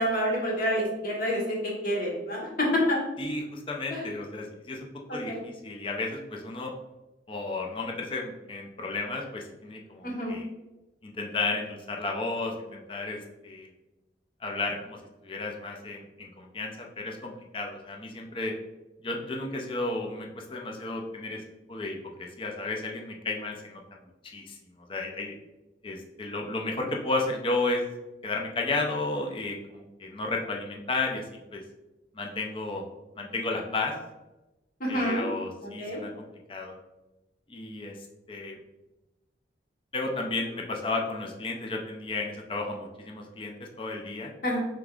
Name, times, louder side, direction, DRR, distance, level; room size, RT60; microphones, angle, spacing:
voice 1, 0.0-3.0 3.9-4.0 5.1-5.5 10.0-10.4 34.8-35.3 35.8-36.0 44.4-44.7, equal, 50° left, -3 dB, 1.3 m, -28 dB
voice 2, 3.2-6.7 7.3-10.5 11.0-13.7 14.4-15.0 15.2-18.5 19.0-21.4 21.7-24.0 24.3-24.6 24.9-25.3 25.8-27.8 28.2-31.2 31.5-31.6 32.1-32.9 33.2-33.9 34.9-36.8 37.5-37.9 38.3-38.6 39.9-44.3, left 3 dB, 30° left, 1 dB, 0.5 m, -33 dB
5.2 x 3.4 x 2.4 m, 1.0 s
head